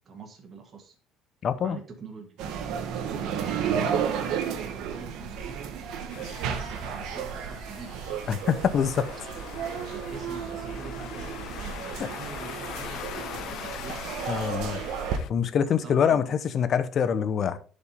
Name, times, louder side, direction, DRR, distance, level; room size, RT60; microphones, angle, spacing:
voice 1, 0.1-1.0 1.6-2.4 2.9-8.0 9.8-14.0 15.7-16.4, right 5 dB, 30° right, 1.7 m, -45 dB
voice 2, 1.4-1.8 8.3-9.1 14.3-14.8 15.3-17.6, left 7 dB, 40° left, 0.8 m, -25 dB
sound 1, 2.4-15.2, right 7 dB, 70° right, 1.3 m, -33 dB
sound 2, 6.1-15.3, left 12 dB, 60° left, 0.5 m, -42 dB
sound 3, 8.5-15.1, left 6 dB, 80° left, 2.0 m, -52 dB
11.0 x 5.3 x 3.6 m
cardioid pair, 145°, 0 cm